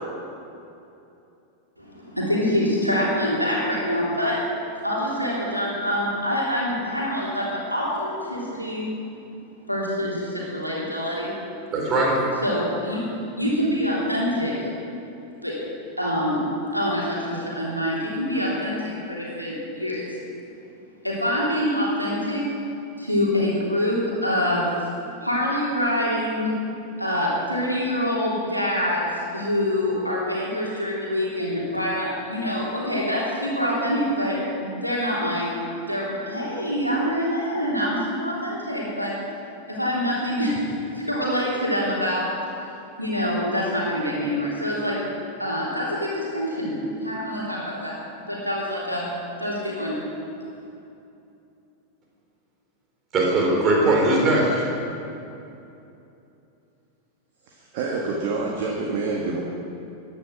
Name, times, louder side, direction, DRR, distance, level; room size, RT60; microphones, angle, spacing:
voice 1, 1.8-4.4 4.8-8.9 9.7-11.3 12.4-13.0 13.4-14.7 15.4-15.5 16.0-16.4 16.7-20.0 21.0-22.4 23.0-24.7 25.2-26.5 27.0-35.5 35.9-39.1 39.7-42.2 43.0-45.0 45.4-47.9 48.3-49.1 49.4-50.0, equal, 90° right, -5 dB, 3.3 m, -25 dB
voice 2, 11.7-12.2 53.1-54.6, right 2 dB, 30° right, -2 dB, 4.1 m, -20 dB
voice 3, 57.5-59.4, right 3 dB, 50° right, -2 dB, 1.8 m, -27 dB
15.0 x 10.5 x 6.2 m, 2.8 s
figure-of-eight pair, 90°, 0 cm